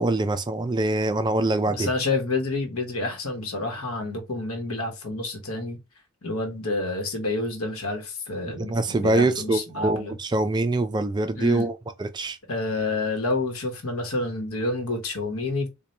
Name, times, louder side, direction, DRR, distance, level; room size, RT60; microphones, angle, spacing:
voice 1, 0.0-1.9 8.6-11.7 12.0-12.4, right 2 dB, 20° right, 0.3 m, -24 dB
voice 2, 1.7-5.8 6.2-10.2 11.3-11.7 12.5-15.7, left 2 dB, 75° left, 1.0 m, -29 dB
4.0 x 2.2 x 3.2 m
head